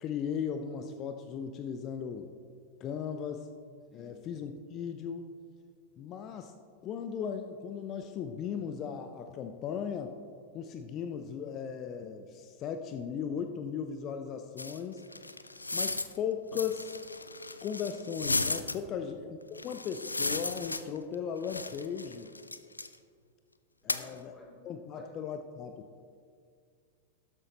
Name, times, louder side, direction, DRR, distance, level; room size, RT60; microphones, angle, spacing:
voice 1, 0.0-2.3 2.8-3.5 3.9-5.3 6.0-6.5 6.8-10.1 10.5-15.0 15.7-16.9 17.6-22.3 23.8-24.3 24.6-25.9, left 7 dB, 35° left, 7 dB, 0.6 m, -37 dB
sound 1, 14.6-16.2 16.5-18.8 19.5-21.1 21.4-22.9 23.9-24.1, left 2 dB, 80° left, 0.4 m, -35 dB
voice 2, 23.8-24.6 24.9-25.1, left 2 dB, 10° left, -3 dB, 3.0 m, -52 dB
13.0 x 10.5 x 2.9 m, 2.2 s
figure-of-eight pair, 90°, 0 cm